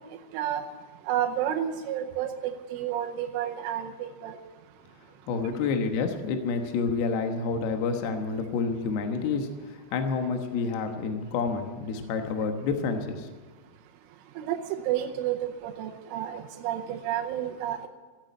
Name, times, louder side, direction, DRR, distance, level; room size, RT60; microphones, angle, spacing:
voice 1, 1.1-2.3 2.7-4.3 14.4-14.6 14.9-17.9, right 11 dB, 90° right, 3 dB, 3.4 m, -30 dB
voice 2, 5.3-13.3, left 4 dB, 70° left, 5 dB, 2.8 m, -29 dB
16.0 x 8.9 x 9.9 m, 1.3 s
omnidirectional pair, 5.6 m